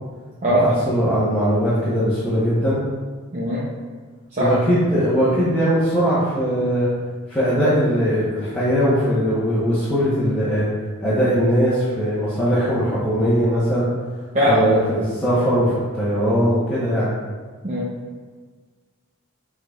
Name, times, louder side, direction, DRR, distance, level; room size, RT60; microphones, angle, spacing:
voice 1, 0.4-2.8 4.4-6.9 7.3-10.7 11.0-13.9 14.4-17.1, equal, 5° left, -13 dB, 1.0 m, -20 dB
voice 2, 3.3-3.6 4.4-4.5 14.3-14.8 17.6-17.9, equal, 35° right, -9 dB, 0.8 m, -19 dB
6.3 x 3.5 x 2.4 m, 1.5 s
head